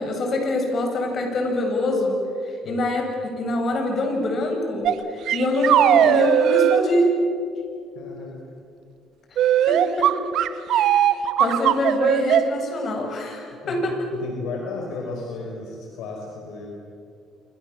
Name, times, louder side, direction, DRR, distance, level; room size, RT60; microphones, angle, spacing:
voice 1, 0.0-7.1 9.3-9.4 9.7-10.1 10.7-11.0 11.4-13.9, left 1 dB, 50° left, 3 dB, 7.8 m, -25 dB
sound 1, 4.9-5.0 5.3-6.8 9.4-12.4, right 10 dB, 70° right, 1.3 m, -18 dB
voice 2, 7.9-8.4 13.6-13.8 14.1-16.7, left 3 dB, 75° left, 1 dB, 4.5 m, -34 dB
27.5 x 26.5 x 7.6 m, 2.4 s
supercardioid pair, 75°, 0 cm